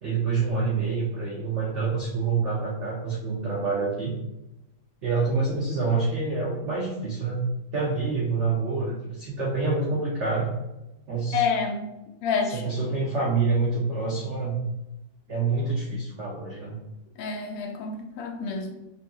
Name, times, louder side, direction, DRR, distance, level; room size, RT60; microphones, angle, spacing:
voice 1, 0.0-4.2 5.0-7.4 7.7-10.5 11.1-11.4 12.5-14.6 15.3-16.8, right 4 dB, 75° right, -3 dB, 0.6 m, -27 dB
voice 2, 11.3-11.9 12.2-12.6 17.2-18.7, left 5 dB, 85° left, 2 dB, 1.4 m, -28 dB
5.2 x 2.7 x 2.3 m, 0.94 s
omnidirectional pair, 2.0 m